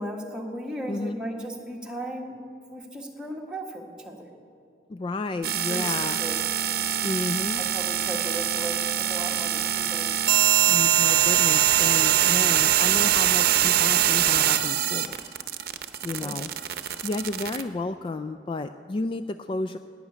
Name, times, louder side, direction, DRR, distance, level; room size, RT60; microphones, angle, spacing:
voice 1, 0.0-2.3 2.7-4.3 5.7-5.8 6.2-6.4 7.6-10.2 16.2-16.4, right 1 dB, 5° right, -1 dB, 1.6 m, -36 dB
voice 2, 0.9-1.2 4.9-6.2 7.0-7.6 10.6-15.2 16.0-16.5 17.0-19.8, left 2 dB, 30° left, 10 dB, 0.3 m, -32 dB
sound 1, 5.4-17.6, right 11 dB, 60° right, 0.8 m, -23 dB
12.0 x 9.8 x 9.3 m, 2.6 s
head